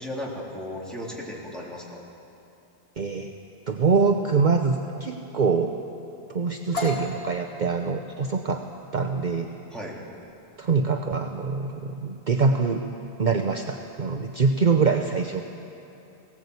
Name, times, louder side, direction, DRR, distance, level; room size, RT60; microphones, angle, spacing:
voice 1, 0.0-2.0 9.7-10.0, left 1 dB, ahead, -5 dB, 3.7 m, -35 dB
voice 2, 3.0-3.3 3.7-5.8 6.3-8.6 8.9-9.5 10.6-12.8 13.2-15.4, right 4 dB, 50° right, 5 dB, 0.9 m, -24 dB
sound 1, 6.7-14.4, left 2 dB, 75° left, 2.7 m, -39 dB
19.5 x 18.0 x 8.3 m, 2.8 s
omnidirectional pair, 1.0 m